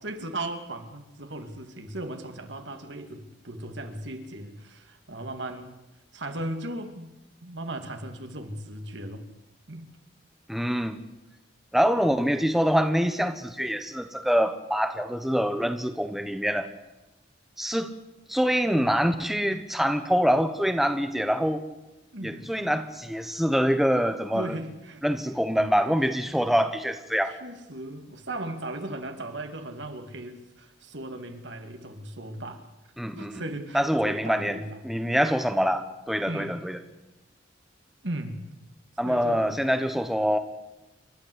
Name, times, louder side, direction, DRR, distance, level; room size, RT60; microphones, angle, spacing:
voice 1, 0.0-5.7 6.1-7.1 7.4-9.3 9.7-9.9 12.0-12.1 22.1-22.5 24.3-25.0 27.3-32.6 33.2-35.0 36.3-36.6 38.0-38.4 39.0-39.5, right 1 dB, 70° right, 6 dB, 2.6 m, -37 dB
voice 2, 10.5-11.0 11.7-16.7 17.6-17.9 18.3-21.6 22.2-24.5 25.0-27.3 33.0-33.4 33.7-34.6 34.8-36.8 39.0-40.4, equal, ahead, 7 dB, 1.1 m, -25 dB
29.5 x 13.0 x 8.2 m, 0.98 s
head